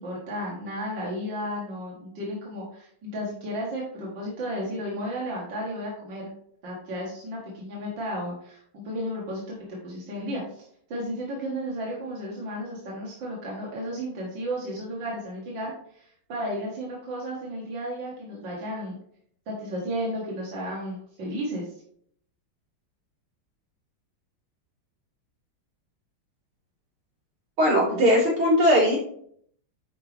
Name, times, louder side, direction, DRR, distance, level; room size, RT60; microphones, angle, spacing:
voice 1, 0.0-6.3 6.6-19.0 19.5-21.7, equal, 60° right, -4 dB, 2.3 m, -33 dB
voice 2, 27.6-29.0, equal, 75° right, -7 dB, 4.5 m, -19 dB
10.0 x 4.6 x 3.4 m, 0.64 s
omnidirectional pair, 2.3 m